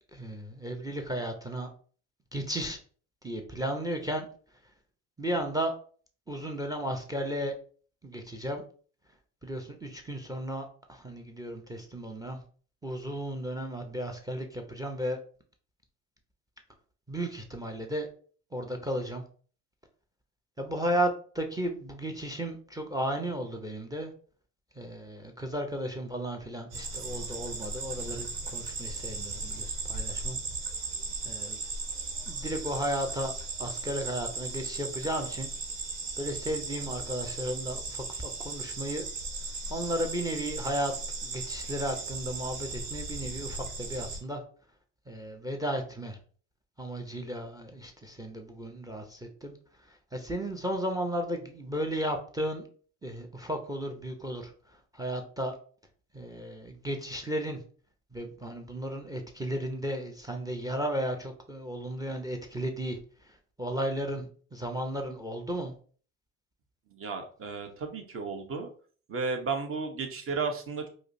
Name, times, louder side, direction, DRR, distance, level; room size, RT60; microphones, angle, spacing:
voice 1, 0.1-1.7 2.3-2.8 3.2-4.3 5.2-5.7 6.3-7.6 8.0-8.6 9.4-12.4 12.8-15.2 17.1-18.1 18.5-19.2 20.6-24.1 24.8-30.4 31.2-31.6 32.3-33.3 33.6-35.5 36.2-39.1 39.7-40.9 41.2-44.4 45.1-46.2 46.8-49.5 49.9-52.7 53.0-54.5 54.9-55.5 56.1-57.6 58.1-63.0 63.2-65.7, equal, 10° right, 5 dB, 0.6 m, -34 dB
sound 1, 26.7-44.2, right 3 dB, 80° right, 1.1 m, -37 dB
voice 2, 66.9-68.7 69.1-70.9, right 4 dB, 35° right, 4 dB, 0.9 m, -33 dB
4.8 x 2.0 x 2.6 m, 0.43 s
supercardioid pair, 80°, 37 cm